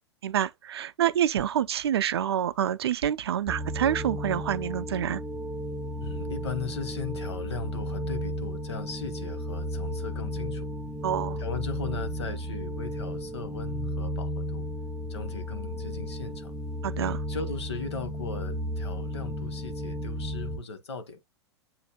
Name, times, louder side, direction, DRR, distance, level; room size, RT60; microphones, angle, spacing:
voice 1, 0.2-5.2 11.0-11.4 16.8-17.2, right 10 dB, 65° right, 0.4 m, -27 dB
sound 1, 3.5-20.6, equal, 5° right, 0.4 m, -34 dB
voice 2, 6.0-10.7 11.4-14.7 15.1-16.5 17.3-21.3, left 4 dB, 70° left, 1.1 m, -37 dB
7.7 x 2.7 x 2.2 m
figure-of-eight pair, 90°, 15 cm